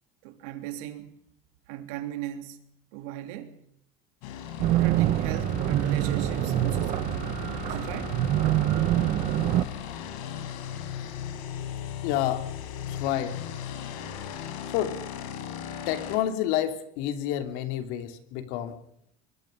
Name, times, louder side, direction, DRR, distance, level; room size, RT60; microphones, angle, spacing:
voice 1, 0.2-1.2 1.7-3.6 4.7-7.1 7.6-8.2, right 12 dB, 75° right, 3.2 m, -38 dB
sound 1, 4.2-16.2, left 9 dB, 80° left, 4.8 m, -37 dB
sound 2, 4.6-9.6, right 14 dB, 40° right, 0.9 m, -25 dB
voice 2, 12.0-12.5 12.8-13.4 14.7-15.0 15.9-18.8, left 11 dB, 65° left, 3.1 m, -29 dB
24.0 x 22.0 x 5.3 m
cardioid pair, 170°, 18 cm